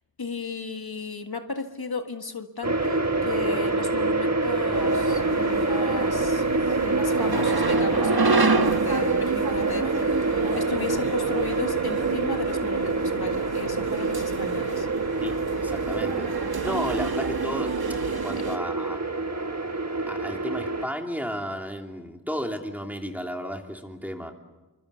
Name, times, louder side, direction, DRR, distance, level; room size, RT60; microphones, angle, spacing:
voice 1, 0.2-6.4 6.8-14.9 16.7-16.8, left 4 dB, 90° left, 5 dB, 1.8 m, -35 dB
sound 1, 2.6-20.9, right 3 dB, 45° right, 1.5 m, -26 dB
sound 2, 4.7-18.6, right 4 dB, 80° right, 1.4 m, -29 dB
voice 2, 15.2-16.3 16.6-17.8 18.0-19.0 20.1-24.3, equal, 5° right, 2 dB, 3.0 m, -33 dB
28.0 x 24.5 x 7.0 m, 1.1 s
wide cardioid pair, 45°, 37 cm